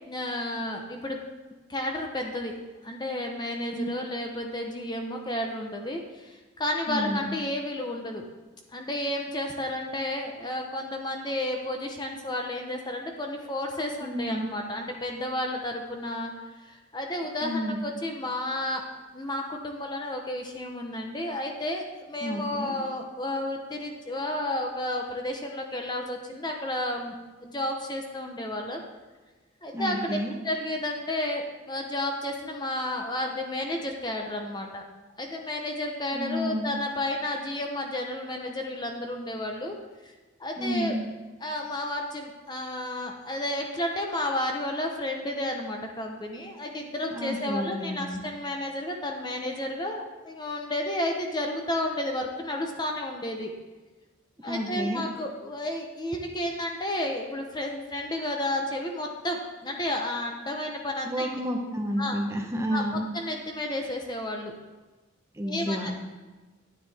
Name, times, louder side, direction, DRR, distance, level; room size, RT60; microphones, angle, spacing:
voice 1, 0.1-1.2 1.7-2.5 2.8-8.2 8.7-16.3 16.6-18.8 19.1-27.1 27.4-28.8 29.6-30.2 30.4-34.8 35.2-39.8 40.0-40.1 40.4-40.9 41.4-53.5 54.4-61.4 62.0-62.2 62.7-64.5 65.4-66.1, left 1 dB, 20° left, 2 dB, 0.8 m, -32 dB
voice 2, 6.9-7.3 14.0-14.5 17.4-17.8 22.2-22.8 29.7-30.4 36.1-36.7 40.6-41.0 47.1-48.2 54.5-55.1 61.0-63.1 65.3-65.9, equal, 15° right, 2 dB, 0.8 m, -30 dB
9.7 x 9.3 x 3.4 m, 1.2 s
head